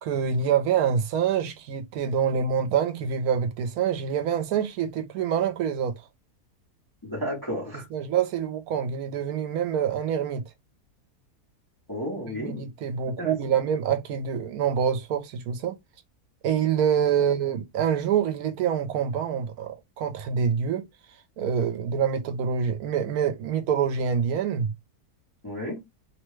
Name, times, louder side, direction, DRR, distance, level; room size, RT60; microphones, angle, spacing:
voice 1, 0.0-5.9 7.9-10.5 12.2-15.7 16.4-20.9 21.4-24.7, right 7 dB, 75° right, 1.1 m, -26 dB
voice 2, 7.0-7.9 11.9-12.7 13.2-13.3 25.4-25.8, equal, 20° left, 0.7 m, -32 dB
2.9 x 2.1 x 3.1 m
omnidirectional pair, 1.7 m